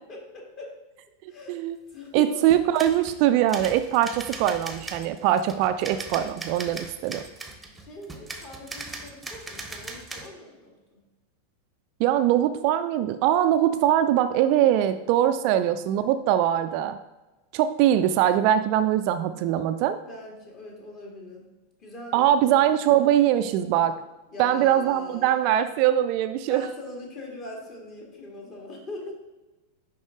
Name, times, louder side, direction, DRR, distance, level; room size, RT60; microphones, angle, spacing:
voice 1, 0.1-0.7 1.3-1.6 1.9-2.5 7.7-11.0 13.7-13.9 15.4-16.0 20.1-21.5 21.8-22.6 24.3-25.4 26.5-29.1, left 2 dB, 35° left, 0 dB, 1.9 m, -41 dB
voice 2, 2.1-7.2 12.0-17.0 17.5-20.0 22.1-24.0 24.4-26.6, right 11 dB, 45° right, 10 dB, 0.3 m, -22 dB
sound 1, 2.4-3.2 3.5-10.3, right 3 dB, 5° right, 0.9 m, -39 dB
10.0 x 3.6 x 3.7 m, 1.1 s
figure-of-eight pair, 90°, 0 cm